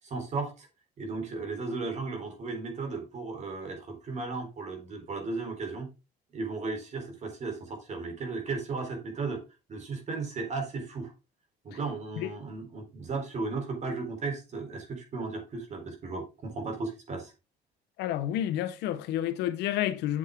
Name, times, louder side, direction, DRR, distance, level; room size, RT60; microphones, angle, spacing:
voice 1, 0.0-0.7 1.0-5.9 6.3-9.4 9.7-11.1 11.6-17.3, right 3 dB, 45° right, 3.7 m, -35 dB
voice 2, 18.0-20.2, left 12 dB, 85° left, 1.1 m, -30 dB
7.7 x 7.6 x 3.7 m
cardioid pair, 110°, 17 cm